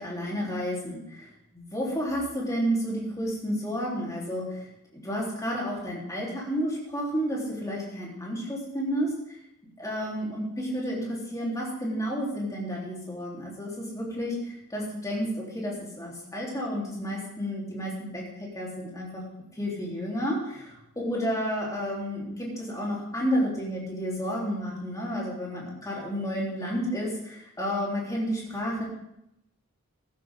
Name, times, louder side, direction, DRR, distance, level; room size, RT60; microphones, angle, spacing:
voice 1, 0.0-4.7 4.9-9.4 9.8-19.2 19.5-28.8, equal, 15° left, -4 dB, 3.6 m, -31 dB
14.5 x 11.5 x 3.8 m, 0.81 s
head